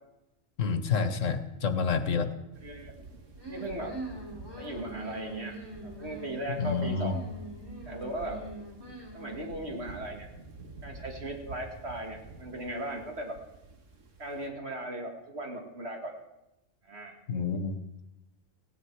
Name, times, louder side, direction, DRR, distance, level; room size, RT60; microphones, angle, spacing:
voice 1, 0.6-2.3 6.6-7.1 17.3-17.8, left 5 dB, 85° left, 11 dB, 1.5 m, -28 dB
sound 1, 2.5-14.5, right 3 dB, 80° right, 1.9 m, -49 dB
voice 2, 2.6-2.9 3.5-4.0 4.6-5.5 5.8-7.2 7.8-8.4 9.1-10.3 10.8-13.4 14.2-16.1 16.9-17.2, right 1 dB, 55° right, 2 dB, 2.6 m, -37 dB
sound 2, 3.3-9.8, right 1 dB, 20° right, 4.7 m, -43 dB
17.5 x 16.5 x 4.8 m, 0.95 s
omnidirectional pair, 1.3 m